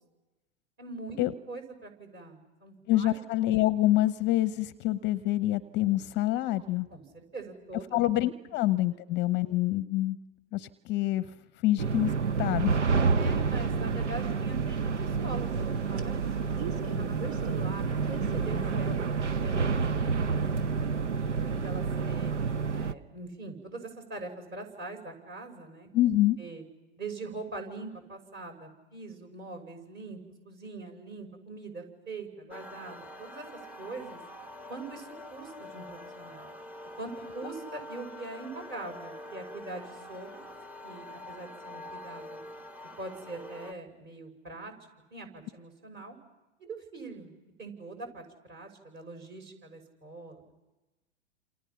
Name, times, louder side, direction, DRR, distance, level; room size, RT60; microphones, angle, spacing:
voice 1, 0.8-1.2 1.5-3.2 6.9-8.0 13.2-16.3 16.7-20.6 21.3-22.3 22.7-26.1 26.4-26.6 27.0-30.2 30.4-33.4 33.8-34.2 34.7-36.5 37.0-40.4 40.8-42.4 43.0-44.7 45.1-46.2 46.6-47.3 47.6-50.4, right 3 dB, 35° right, 4 dB, 6.1 m, -43 dB
voice 2, 2.9-6.9 7.9-10.2 10.5-11.3 11.6-12.1 12.4-13.0 25.9-26.4, left 15 dB, 30° left, 14 dB, 0.8 m, -26 dB
sound 1, 11.8-22.9, right 5 dB, 85° right, 0.8 m, -29 dB
sound 2, 13.5-19.6, right 3 dB, 60° right, 3.2 m, -43 dB
sound 3, 32.5-43.7, left 1 dB, 5° right, 1.0 m, -45 dB
29.0 x 28.0 x 5.9 m, 1.1 s
hypercardioid pair, 100°, 35 cm